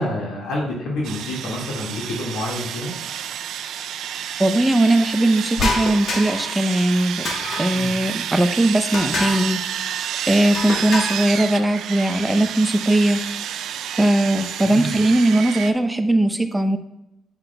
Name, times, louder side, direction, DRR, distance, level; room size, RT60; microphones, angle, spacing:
voice 1, 0.0-2.9 7.7-7.9 14.6-15.0, left 1 dB, 80° left, -2 dB, 1.8 m, -28 dB
Sawing, 1.0-15.7, right 9 dB, 80° right, 0.3 m, -30 dB
voice 2, 4.4-7.3 7.6-9.9 10.3-13.2 14.0-16.8, right 1 dB, 10° right, 7 dB, 0.6 m, -19 dB
sound 1, 5.6-6.5 7.3-7.9 8.9-9.5 10.5-11.3, left 2 dB, 60° left, 1.2 m, -26 dB
7.7 x 5.9 x 2.2 m, 0.90 s
cardioid pair, 90°, 0 cm